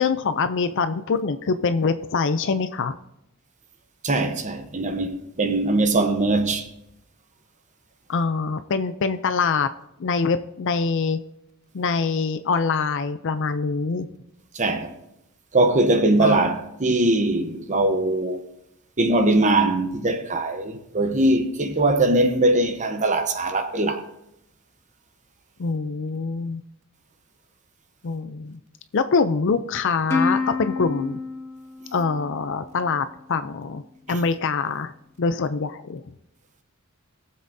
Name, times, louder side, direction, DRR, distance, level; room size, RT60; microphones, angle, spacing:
voice 1, 0.0-3.0 8.1-9.7 10.0-11.2 11.7-14.1 16.2-16.5 25.6-26.6 28.0-28.6 28.9-31.2 31.9-33.8 34.1-34.9 35.2-36.0, left 4 dB, 60° left, 0.5 m, -24 dB
voice 2, 4.0-6.7 14.5-14.9 15.5-18.5 19.0-24.0 34.1-34.2, right 2 dB, 35° right, 0.9 m, -21 dB
Plucked string instrument, 30.1-32.8, left 3 dB, 10° left, 1.6 m, -28 dB
20.5 x 7.4 x 2.7 m
head